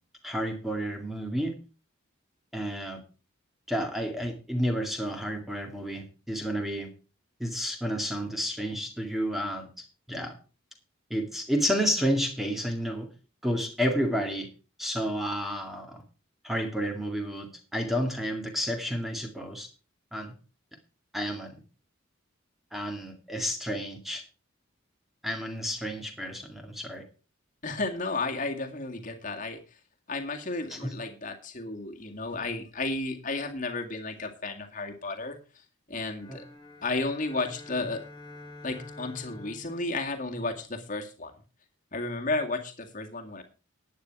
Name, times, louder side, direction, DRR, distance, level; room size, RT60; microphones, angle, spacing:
voice 1, 0.2-1.5 2.5-3.0 3.7-6.9 7.4-9.7 10.1-10.4 11.1-13.1 13.4-14.5 14.8-16.0 16.4-19.7 20.1-20.3 21.1-21.6 22.7-24.2 25.2-27.0 30.7-31.0 36.3-36.4, equal, ahead, 4 dB, 2.1 m, -31 dB
voice 2, 27.6-29.6 30.1-36.5 36.8-38.0 38.6-41.3 41.9-43.4, left 3 dB, 40° left, 3 dB, 2.0 m, -33 dB
sound 1, 36.1-40.8, left 2 dB, 20° left, 2.2 m, -48 dB
11.5 x 9.5 x 4.6 m, 0.35 s
head